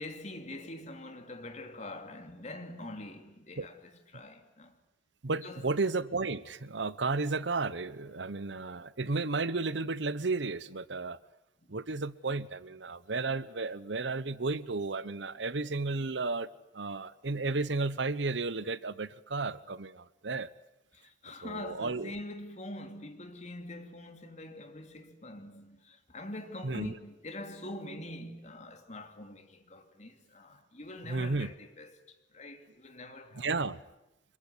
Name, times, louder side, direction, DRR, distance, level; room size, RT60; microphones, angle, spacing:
voice 1, 0.0-4.7 5.3-5.7 8.2-8.3 20.9-32.0 32.3-33.5, left 1 dB, 40° left, 2.8 m, -44 dB
voice 2, 5.2-11.2 11.7-16.5 16.7-20.5 21.4-22.1 26.6-26.9 31.1-31.5 33.4-33.8, right 3 dB, 80° right, 1.0 m, -33 dB
26.0 x 22.5 x 9.7 m
head